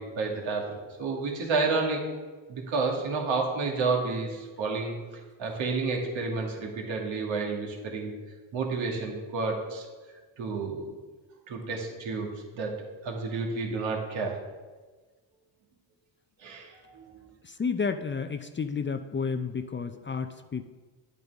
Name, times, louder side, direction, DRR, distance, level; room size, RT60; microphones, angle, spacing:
voice 1, 0.0-2.0 2.5-4.9 5.4-8.1 8.5-9.9 10.4-11.0 11.5-12.3 12.5-14.4 16.4-17.0, right 4 dB, 70° right, 0 dB, 2.2 m, -30 dB
voice 2, 17.4-20.6, left 5 dB, 25° left, 9 dB, 0.6 m, -31 dB
9.4 x 8.2 x 3.5 m, 1.3 s
supercardioid pair, 55°, 47 cm